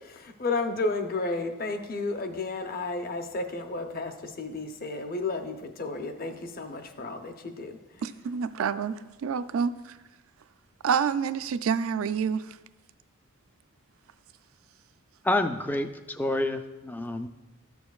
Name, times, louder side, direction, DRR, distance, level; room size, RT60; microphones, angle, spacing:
voice 1, 0.0-7.8, left 3 dB, 40° left, 0.6 m, -32 dB
voice 2, 8.0-10.0 10.8-12.6, right 6 dB, 70° right, 0.4 m, -28 dB
voice 3, 15.2-17.3, left 1 dB, 10° left, 0.3 m, -28 dB
13.5 x 7.0 x 2.4 m
head